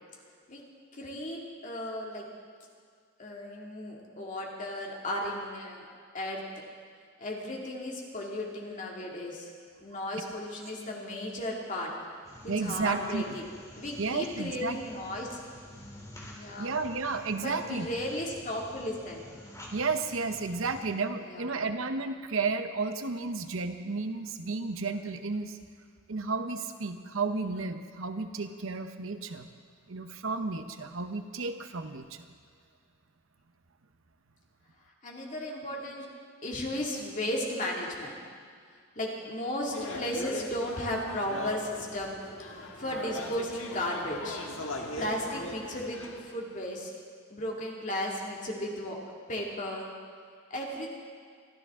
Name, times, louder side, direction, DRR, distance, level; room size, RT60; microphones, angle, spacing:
voice 1, 0.9-2.2 3.2-5.8 6.1-6.4 7.2-9.5 9.8-11.9 12.4-13.4 13.8-15.4 16.3-16.8 17.3-19.3 21.2-21.7 35.0-36.1 36.4-38.2 39.0-42.2 42.8-46.9 47.3-49.0 49.3-49.9 50.5-50.9, left 1 dB, 40° left, -2 dB, 2.3 m, -35 dB
sound 1, 12.2-20.8, left 1 dB, 15° left, 2.4 m, -49 dB
voice 2, 12.5-13.2 14.0-14.8 16.6-17.9 19.7-25.6 26.1-29.5 29.9-32.3, right 4 dB, 75° right, 8 dB, 0.9 m, -32 dB
sound 2, 39.7-46.2, left 2 dB, 70° left, 1.7 m, -40 dB
23.5 x 13.5 x 3.7 m, 2.1 s
head